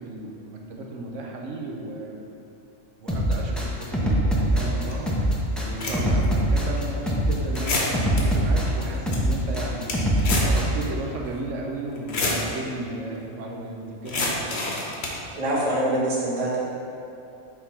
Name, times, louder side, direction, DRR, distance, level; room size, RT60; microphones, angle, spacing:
voice 1, 0.0-2.2 3.0-14.7, right 2 dB, 90° right, 0 dB, 1.1 m, -34 dB
sound 1, 3.1-10.8, right 1 dB, ahead, 0.5 m, -23 dB
sound 2, 4.9-5.0 5.6-6.3 6.8-6.9 7.6-8.2 8.7-8.8 8.9-9.2 9.5-10.6 10.9-11.0 11.9-12.5 14.1-15.2, left 2 dB, 65° left, 1.1 m, -27 dB
voice 2, 15.3-16.6, right 1 dB, 30° right, -7 dB, 1.1 m, -24 dB
6.2 x 3.6 x 4.3 m, 2.7 s
omnidirectional pair, 1.2 m